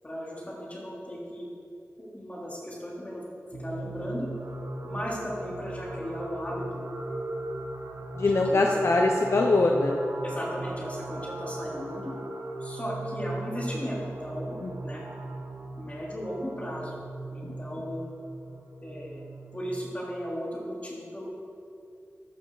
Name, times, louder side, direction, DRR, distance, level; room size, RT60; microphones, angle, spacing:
voice 1, 0.0-1.5 2.1-3.2 3.5-4.3 4.8-6.8 8.2-8.8 10.2-12.2 12.6-14.6 14.8-15.0 15.8-17.0 17.3-18.1 18.8-19.2 19.5-21.3, equal, 30° left, -5 dB, 3.7 m, -36 dB
sound 1, 3.5-19.9, right 2 dB, 80° right, 1.4 m, -38 dB
voice 2, 8.2-10.0 14.6-14.7 17.4-17.6, left 2 dB, 65° left, 1 dB, 0.9 m, -23 dB
14.5 x 12.0 x 4.1 m, 2.6 s
wide cardioid pair, 105°, 5 cm